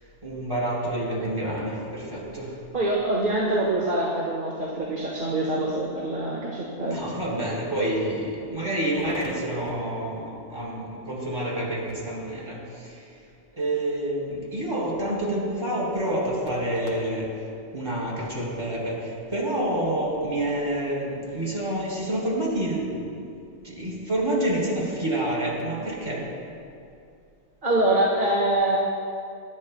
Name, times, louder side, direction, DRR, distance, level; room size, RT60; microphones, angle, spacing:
voice 1, 0.2-2.5 6.9-13.1 13.6-17.3 17.7-23.2 23.6-26.3, right 1 dB, 25° right, -5 dB, 3.5 m, -28 dB
voice 2, 2.7-7.0 27.6-28.8, right 1 dB, 45° right, -4 dB, 1.6 m, -24 dB
23.0 x 12.0 x 2.2 m, 2.5 s
omnidirectional pair, 1.2 m